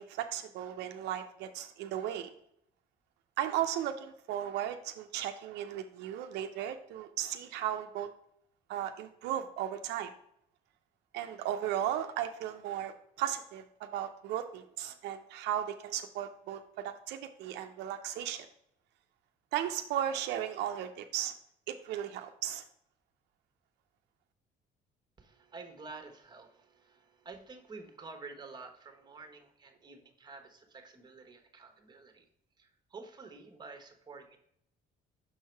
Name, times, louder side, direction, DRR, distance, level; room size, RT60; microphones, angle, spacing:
voice 1, 0.0-2.3 3.4-8.1 8.7-10.1 11.1-18.5 19.5-21.3 21.7-22.6, right 11 dB, 85° right, 7 dB, 0.5 m, -36 dB
voice 2, 25.2-32.3 32.6-34.4, right 4 dB, 25° right, 5 dB, 1.2 m, -50 dB
6.2 x 4.6 x 4.5 m, 0.72 s
cardioid pair, 110°, 17 cm